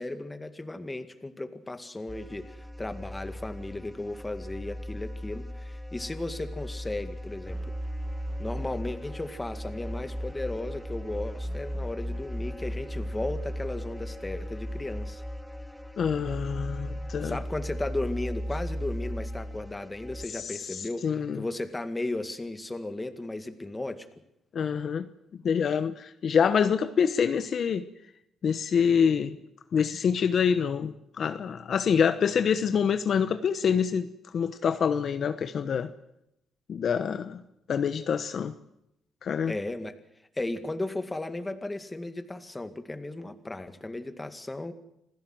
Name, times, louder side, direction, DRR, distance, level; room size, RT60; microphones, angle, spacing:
voice 1, 0.0-7.7 8.4-15.2 17.2-24.1 39.5-40.0 40.4-44.7, left 2 dB, 15° left, 9 dB, 2.1 m, -35 dB
sound 1, 2.1-20.3, equal, ahead, 1.4 m, -36 dB
voice 2, 16.0-17.4 20.3-21.4 24.5-27.8 28.4-29.4 29.7-35.9 36.7-37.4 37.7-38.5 39.2-39.5, left 7 dB, 55° left, 11 dB, 1.0 m, -26 dB
26.5 x 16.5 x 7.8 m, 0.83 s
cardioid pair, 90°, 0 cm